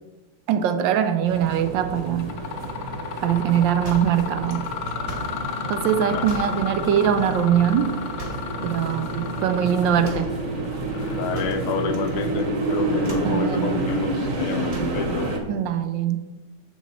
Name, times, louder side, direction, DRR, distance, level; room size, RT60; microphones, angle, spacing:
voice 1, 0.5-2.3 3.2-4.7 5.7-8.0 8.6-10.3 13.2-13.9 15.5-16.2, right 9 dB, 75° right, 10 dB, 1.2 m, -22 dB
sound 1, 1.3-15.4, right 2 dB, 45° right, 1.3 m, -29 dB
Mechanisms, 1.4-1.7 2.1-12.6, left 7 dB, 65° left, 1.2 m, -34 dB
sound 2, 3.8-5.4 6.2-6.6 8.2-8.6 10.0-10.4 11.3-12.1 12.4-12.7 13.0-13.4 14.7-15.1, right 1 dB, 25° right, 0.7 m, -38 dB
voice 2, 11.1-15.4, left 5 dB, 85° left, 7 dB, 1.6 m, -29 dB
7.5 x 6.2 x 4.4 m, 1.2 s
omnidirectional pair, 2.3 m